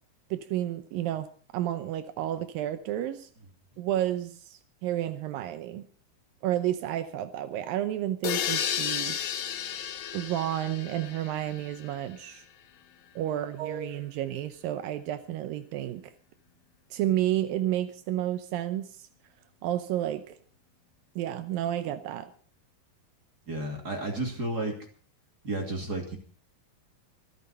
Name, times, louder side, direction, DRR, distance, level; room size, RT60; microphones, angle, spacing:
voice 1, 0.3-3.3 3.8-5.8 6.4-9.2 10.1-12.5 13.2-16.1 16.9-19.1 19.6-20.4 21.2-22.3, right 12 dB, 80° right, 2.5 m, -31 dB
sound 1, 8.2-12.0, left 9 dB, 85° left, 3.1 m, -33 dB
voice 2, 23.5-24.9 25.4-26.2, right 2 dB, 30° right, 2.8 m, -32 dB
26.0 x 9.4 x 4.3 m
omnidirectional pair, 4.1 m